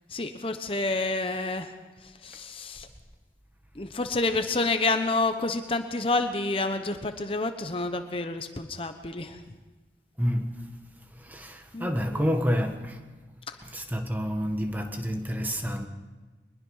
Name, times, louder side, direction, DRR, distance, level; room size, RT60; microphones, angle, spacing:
voice 1, 0.1-1.7 2.0-2.9 3.8-9.4 11.7-12.3, left 3 dB, 30° left, 0.9 m, -29 dB
voice 2, 10.2-10.7 11.3-13.0 13.7-15.9, equal, 10° right, 1.5 m, -28 dB
23.0 x 21.0 x 5.6 m
head